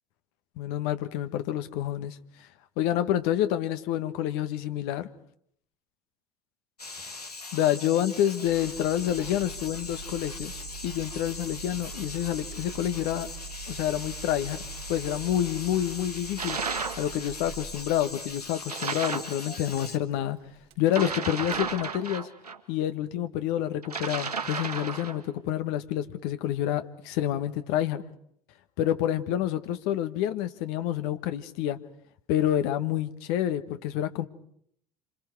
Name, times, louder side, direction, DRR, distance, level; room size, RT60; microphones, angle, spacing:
voice 1, 0.6-2.2 2.8-5.1 7.0-7.1 7.5-13.3 13.7-14.6 14.9-16.6 17.0-20.4 20.8-22.3 22.7-28.0 28.8-31.8 32.3-34.3, left 12 dB, 60° left, 10 dB, 1.6 m, -28 dB
sound 1, 6.8-20.0, left 3 dB, 90° left, 1.7 m, -41 dB
Engine starting, 8.4-21.8, right 6 dB, 55° right, 1.4 m, -44 dB
sound 2, 16.4-17.1 18.7-19.4 20.9-22.6 23.8-25.2, right 5 dB, 90° right, 1.8 m, -33 dB
28.5 x 27.5 x 4.8 m, 0.67 s
figure-of-eight pair, 65°, 19 cm